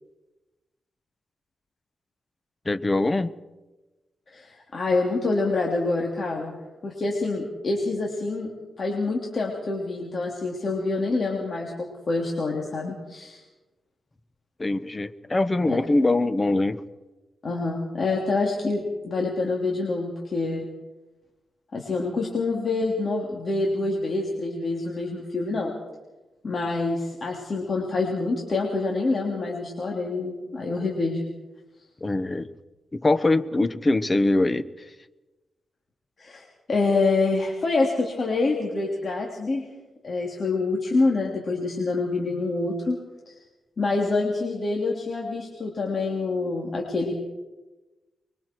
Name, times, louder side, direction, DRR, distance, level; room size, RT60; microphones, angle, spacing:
voice 1, 2.6-3.3 14.6-16.8 32.0-32.5 32.9-34.7, left 2 dB, 25° left, 13 dB, 1.0 m, -23 dB
voice 2, 4.3-6.6 6.8-8.5 8.8-13.4 15.7-15.8 17.4-20.7 21.7-25.7 26.4-31.3 36.2-39.6 40.0-43.0 43.8-47.1, left 3 dB, 45° left, -1 dB, 3.2 m, -26 dB
25.0 x 23.0 x 4.6 m, 1.1 s
wide cardioid pair, 110°, 0 cm